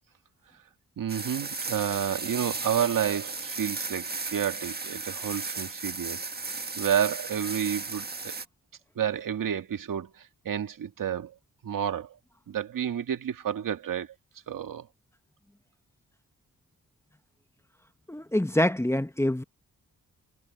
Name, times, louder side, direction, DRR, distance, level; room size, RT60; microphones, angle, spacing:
voice 1, 1.0-6.3 6.8-8.3 9.0-10.1 10.5-11.3 11.6-12.1 12.5-14.1 14.5-14.9, right 9 dB, 75° right, 1.9 m, -30 dB
sound 1, 1.1-8.4, right 4 dB, 30° right, 1.6 m, -35 dB
voice 2, 18.1-19.4, left 1 dB, 10° left, 1.2 m, -25 dB
cardioid pair, 85°, 33 cm